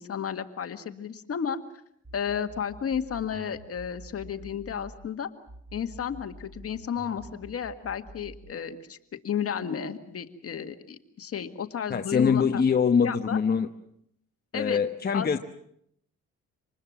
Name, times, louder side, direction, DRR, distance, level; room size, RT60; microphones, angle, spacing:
voice 1, 0.0-1.6 2.1-5.3 5.7-12.6 13.0-13.4 14.5-14.8 15.1-15.4, left 8 dB, 50° left, 8 dB, 1.9 m, -33 dB
sound 1, 2.0-5.1 5.5-8.5, right 2 dB, 5° right, 5.9 m, -48 dB
voice 2, 11.9-13.7 14.5-15.4, left 6 dB, 30° left, 5 dB, 1.1 m, -23 dB
26.0 x 20.5 x 7.4 m, 0.72 s
cardioid pair, 90°, 30 cm